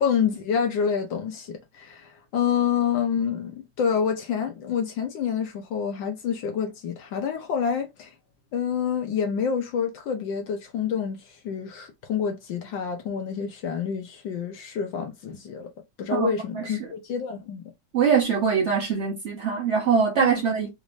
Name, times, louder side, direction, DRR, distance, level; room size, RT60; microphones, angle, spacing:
voice 1, 0.0-8.1 8.5-15.7 16.0-17.6 20.2-20.3, left 7 dB, 75° left, 1.4 m, -27 dB
voice 2, 16.1-16.8 17.9-20.7, right 6 dB, 60° right, 0.7 m, -23 dB
4.2 x 2.5 x 3.2 m
omnidirectional pair, 2.1 m